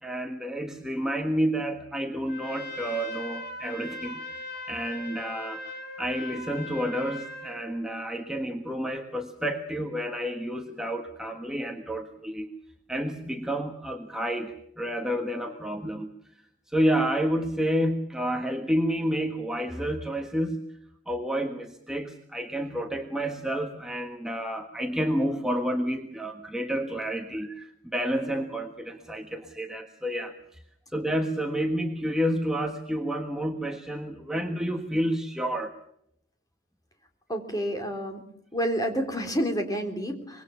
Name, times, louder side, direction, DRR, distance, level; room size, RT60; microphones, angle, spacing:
voice 1, 0.0-12.5 12.9-16.1 16.7-20.6 21.1-30.6 30.9-35.7, equal, 5° right, 2 dB, 1.5 m, -30 dB
Trumpet, 2.3-7.7, left 2 dB, 60° left, 4.7 m, -39 dB
voice 2, 37.3-38.2 38.5-40.4, equal, 20° left, 5 dB, 3.5 m, -29 dB
25.0 x 22.0 x 7.1 m, 0.73 s
head